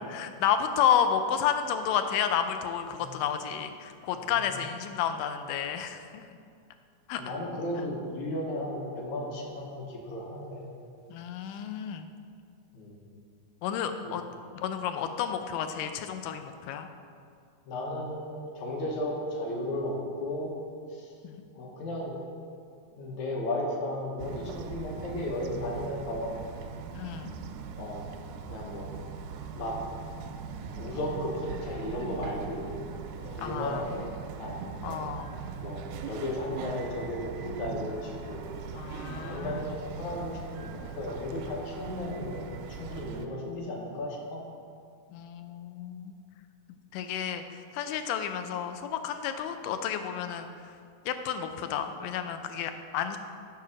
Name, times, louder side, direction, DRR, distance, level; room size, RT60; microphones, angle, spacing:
voice 1, 0.1-6.2 7.1-7.2 11.1-12.1 13.6-14.2 14.6-16.9 21.2-21.4 26.9-27.3 33.4-33.9 34.8-35.4 38.7-39.7 45.1-46.2 46.9-50.5 51.1-53.2, left 8 dB, 85° left, 8 dB, 2.1 m, -31 dB
voice 2, 7.2-10.6 12.7-12.9 14.0-14.2 17.7-20.5 20.9-21.1 21.6-22.2 23.0-26.4 27.8-28.0 28.5-28.9 29.5-29.8 30.7-32.8 33.2-34.1 34.4-34.6 35.6-38.5 39.2-42.4 42.8-44.4, left 1 dB, 70° left, -1 dB, 2.3 m, -35 dB
Bird vocalization bird call bird song, 24.2-43.3, right 6 dB, 85° right, 2.1 m, -40 dB
7.0 x 6.2 x 4.9 m, 2.3 s
omnidirectional pair, 3.6 m